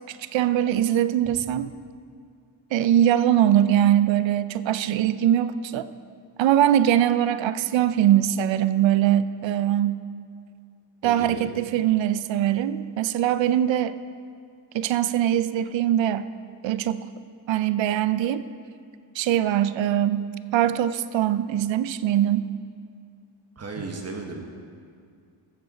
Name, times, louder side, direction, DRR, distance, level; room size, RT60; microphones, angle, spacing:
voice 1, 0.1-1.7 2.7-5.9 6.4-10.0 11.0-14.0 14.7-16.3 16.6-17.1 17.5-18.4 19.2-20.3 20.5-22.5, right 11 dB, 70° right, 13 dB, 0.5 m, -22 dB
voice 2, 11.0-11.5 23.6-24.5, right 3 dB, 30° right, 2 dB, 1.2 m, -35 dB
14.5 x 7.9 x 4.1 m, 2.3 s
wide cardioid pair, 150°, 47 cm